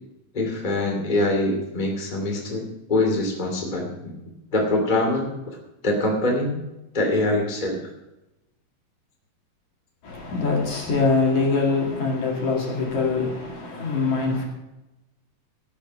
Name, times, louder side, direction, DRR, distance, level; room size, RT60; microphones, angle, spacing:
voice 1, 0.3-4.1 4.5-5.3 5.8-6.6 6.9-7.8, left 2 dB, 15° left, 2.3 m, -24 dB
voice 2, 10.0-14.5, left 4 dB, 60° left, 3.5 m, -23 dB
17.0 x 7.2 x 6.1 m
omnidirectional pair, 3.9 m